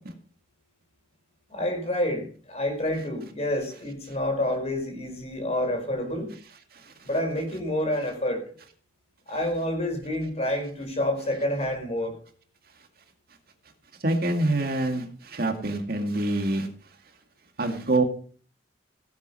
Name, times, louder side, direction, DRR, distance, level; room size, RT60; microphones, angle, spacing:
voice 1, 1.5-6.3 7.0-8.4 9.3-12.2, left 1 dB, 35° left, 4 dB, 4.7 m, -28 dB
voice 2, 14.0-16.7 17.6-18.0, right 2 dB, 55° right, 5 dB, 2.1 m, -25 dB
17.0 x 8.3 x 5.6 m, 0.43 s
head